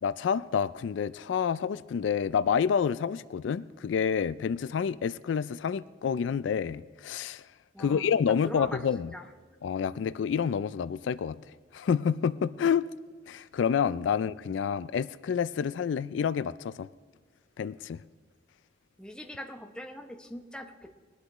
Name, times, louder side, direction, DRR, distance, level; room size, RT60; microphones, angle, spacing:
voice 1, 0.0-7.4 7.8-9.1 9.6-11.4 11.7-12.9 13.3-16.9 17.6-18.0, left 7 dB, 80° left, 0.3 m, -28 dB
voice 2, 8.5-8.8 9.1-9.3 19.0-21.0, equal, 5° left, 0.8 m, -42 dB
20.5 x 11.5 x 3.1 m
head